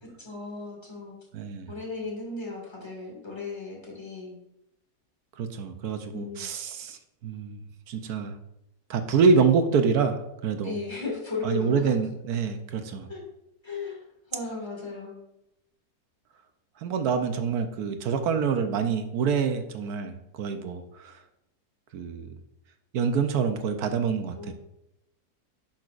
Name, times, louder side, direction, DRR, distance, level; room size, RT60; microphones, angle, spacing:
voice 1, 0.0-1.1 1.7-4.4 6.1-6.5 10.6-11.9 13.1-13.2 13.6-14.0 14.3-15.2 24.4-24.5, left 3 dB, 15° left, -2 dB, 2.2 m, -36 dB
voice 2, 1.3-1.7 5.4-7.6 7.9-8.4 8.9-10.7 11.4-13.1 16.8-21.2 21.9-22.3 22.9-24.5, right 5 dB, 75° right, 7 dB, 1.3 m, -26 dB
10.5 x 6.0 x 2.5 m, 0.85 s
omnidirectional pair, 1.7 m